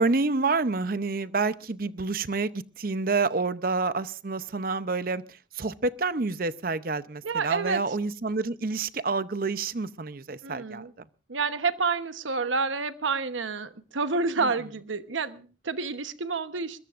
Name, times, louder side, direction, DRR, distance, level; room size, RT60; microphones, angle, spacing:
voice 1, 0.0-10.9 14.4-14.5, right 3 dB, 50° right, 14 dB, 0.7 m, -28 dB
voice 2, 7.2-7.8 10.4-10.9 11.3-16.8, right 4 dB, 90° right, 11 dB, 1.1 m, -29 dB
22.0 x 21.0 x 2.5 m, 0.36 s
head